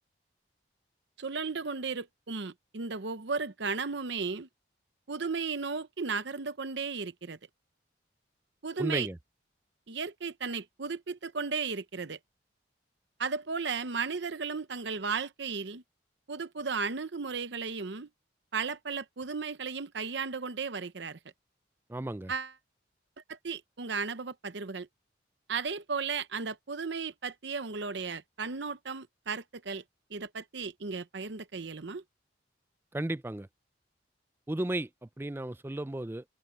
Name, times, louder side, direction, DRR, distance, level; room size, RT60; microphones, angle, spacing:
voice 1, 1.2-4.5 5.1-7.4 8.6-9.1 9.9-12.2 13.2-15.8 16.3-18.1 18.5-21.2 22.3-22.5 23.3-24.9 25.5-29.8 30.1-32.0, right 5 dB, 70° right, 0.8 m, -35 dB
voice 2, 8.8-9.2 21.9-22.3 32.9-33.5 34.5-36.2, right 1 dB, 10° right, 0.4 m, -34 dB
head